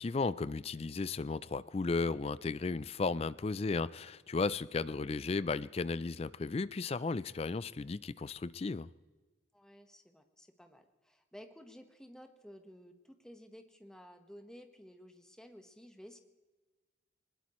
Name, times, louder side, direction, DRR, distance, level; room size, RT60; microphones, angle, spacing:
voice 1, 0.0-8.9, left 3 dB, 30° left, 17 dB, 0.4 m, -34 dB
voice 2, 9.5-16.2, equal, 5° left, 5 dB, 1.2 m, -54 dB
21.0 x 20.5 x 3.1 m, 1.3 s
head